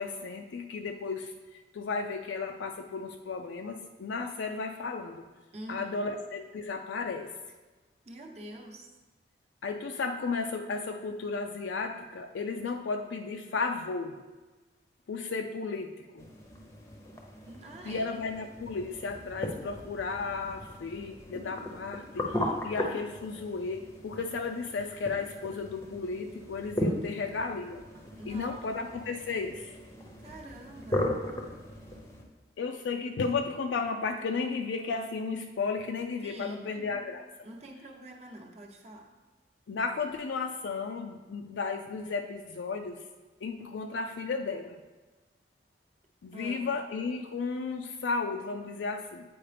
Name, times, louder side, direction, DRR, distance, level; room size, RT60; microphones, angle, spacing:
voice 1, 0.0-5.2 5.7-7.3 9.6-14.1 15.1-16.3 17.8-27.8 28.3-29.8 32.6-37.3 39.7-43.1 43.4-44.8 46.2-49.2, left 4 dB, 75° left, 4 dB, 0.4 m, -34 dB
voice 2, 5.5-6.1 8.1-8.9 17.5-18.2 27.1-27.4 28.1-28.8 30.2-31.2 36.2-37.1 37.4-39.2 46.3-46.7, right 1 dB, 35° right, 0 dB, 0.8 m, -46 dB
sound 1, 16.2-32.2, left 1 dB, 15° left, 0.6 m, -37 dB
8.6 x 4.6 x 3.3 m, 1.2 s
head